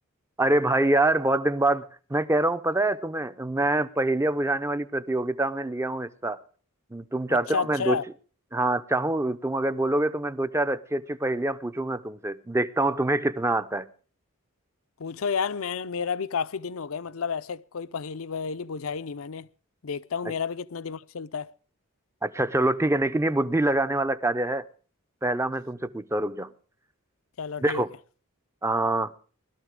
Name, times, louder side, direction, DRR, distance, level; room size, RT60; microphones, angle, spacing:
voice 1, 0.4-6.4 6.9-8.0 8.5-13.9 22.2-24.6 25.2-26.5 27.6-27.9 28.6-29.1, right 2 dB, 10° right, 0.6 m, -25 dB
voice 2, 7.5-8.0 15.0-19.5 19.8-21.5 27.4-27.8, left 6 dB, 70° left, 0.6 m, -31 dB
20.5 x 13.0 x 3.6 m
head